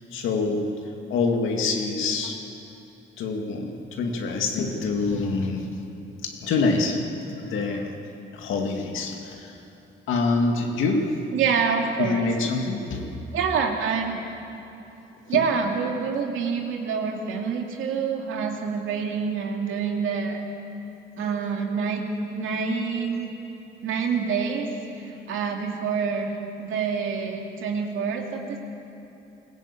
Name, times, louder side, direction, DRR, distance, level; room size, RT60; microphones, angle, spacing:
voice 1, 0.1-2.4 3.2-5.7 6.2-8.0 8.3-9.6 10.1-11.2 12.0-13.1 15.3-15.4, left 3 dB, 80° left, 2 dB, 2.3 m, -26 dB
voice 2, 11.3-12.3 13.3-14.2 15.3-20.4 21.2-22.0 22.3-23.3 23.8-24.7 25.0-26.3 26.6-28.6, right 6 dB, 85° right, 2 dB, 2.5 m, -26 dB
21.5 x 15.0 x 8.6 m, 3.0 s
cardioid pair, 90°, 20 cm